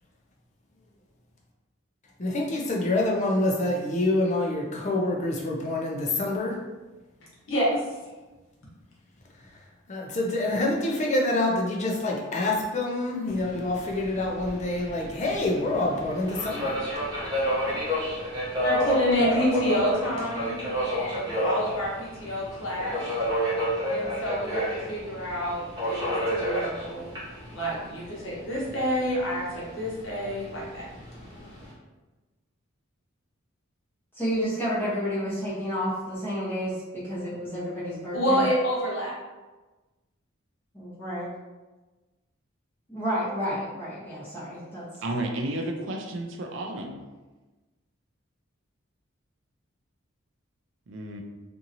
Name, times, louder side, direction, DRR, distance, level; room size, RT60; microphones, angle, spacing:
voice 1, 2.2-6.6 9.9-16.8, left 2 dB, 35° left, 0 dB, 0.5 m, -26 dB
voice 2, 7.5-7.8 18.6-23.0 23.9-27.1 27.5-30.9 38.1-39.1, equal, 65° left, -5 dB, 1.0 m, -28 dB
Subway metro underground, 13.3-31.7, equal, 20° right, 0.9 m, -31 dB
voice 3, 34.2-38.4 40.7-41.3 42.9-44.8 45.2-45.3, equal, 10° left, -11 dB, 0.9 m, -30 dB
voice 4, 45.0-47.0 50.9-51.2, right 1 dB, 65° right, 2 dB, 0.4 m, -32 dB
2.8 x 2.6 x 2.6 m, 1.2 s
head